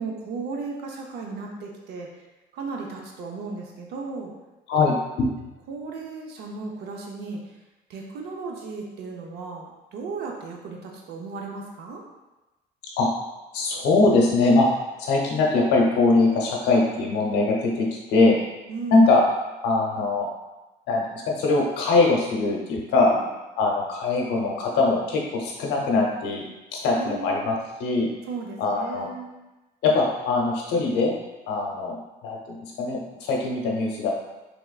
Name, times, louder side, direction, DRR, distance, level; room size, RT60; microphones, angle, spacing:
voice 1, 0.0-2.1 2.5-4.3 5.7-7.4 7.9-12.0 18.7-19.0 23.0-23.2 27.0-27.4 28.3-29.3, right 4 dB, 75° right, 0 dB, 0.7 m, -35 dB
voice 2, 4.7-5.5 13.0-13.1 13.5-14.7 15.0-18.4 18.9-19.2 19.6-20.3 20.9-23.1 23.6-27.5 27.8-28.1 28.6-29.1 29.8-31.1 31.5-34.1, left 3 dB, 85° left, -1 dB, 0.8 m, -22 dB
3.5 x 3.4 x 2.4 m, 1.1 s
cardioid pair, 110°, 17 cm